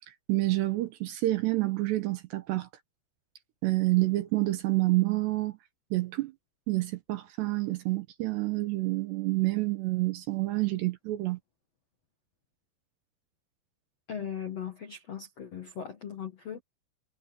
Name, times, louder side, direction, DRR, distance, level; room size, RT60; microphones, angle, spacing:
voice 1, 0.3-2.7 3.6-5.6 5.9-6.3 6.7-11.4, right 19 dB, 75° right, 2.8 m, -28 dB
voice 2, 14.1-16.6, left 8 dB, 65° left, 1.6 m, -38 dB
omnidirectional pair, 5.8 m